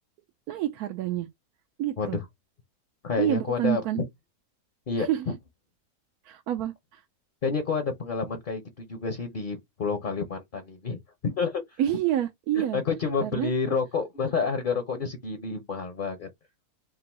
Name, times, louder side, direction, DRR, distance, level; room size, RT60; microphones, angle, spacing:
voice 1, 0.5-1.3 1.8-2.2 3.2-4.0 5.0-5.3 6.2-7.0 11.8-12.8 13.2-13.5, right 12 dB, 80° right, 1.1 m, -28 dB
voice 2, 3.0-4.0 4.9-5.1 7.4-11.6 12.6-16.3, left 5 dB, 45° left, 0.7 m, -29 dB
3.8 x 2.5 x 4.1 m
omnidirectional pair, 1.6 m